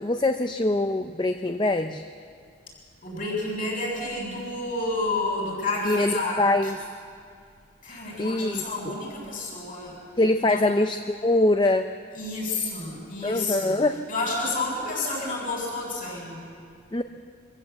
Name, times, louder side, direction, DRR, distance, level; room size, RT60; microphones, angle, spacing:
voice 1, 0.0-2.1 5.8-6.8 8.2-9.0 10.2-11.9 13.2-14.0 16.9-17.0, left 2 dB, 20° left, 8 dB, 0.5 m, -23 dB
voice 2, 3.0-6.7 7.8-9.9 10.4-10.6 12.1-13.8 14.1-16.4, left 2 dB, 40° left, -3 dB, 7.3 m, -30 dB
24.5 x 15.5 x 8.1 m, 2.3 s
head